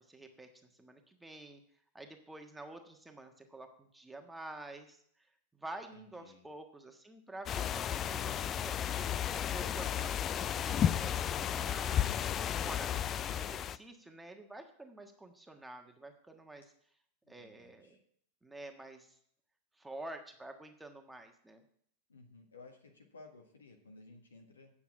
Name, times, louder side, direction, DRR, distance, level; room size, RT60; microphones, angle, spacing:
voice 1, 0.0-1.6 1.9-5.0 5.5-12.1 12.6-16.7 17.3-18.0 18.4-19.2 19.8-21.6, right 2 dB, 5° right, 4 dB, 1.4 m, -49 dB
voice 2, 5.9-6.4 17.2-18.0 22.1-24.7, left 3 dB, 70° left, 2 dB, 1.6 m, -56 dB
sound 1, 7.5-13.8, left 9 dB, 30° left, 0.4 m, -33 dB
9.3 x 7.2 x 5.9 m, 0.66 s
figure-of-eight pair, 90°, 0 cm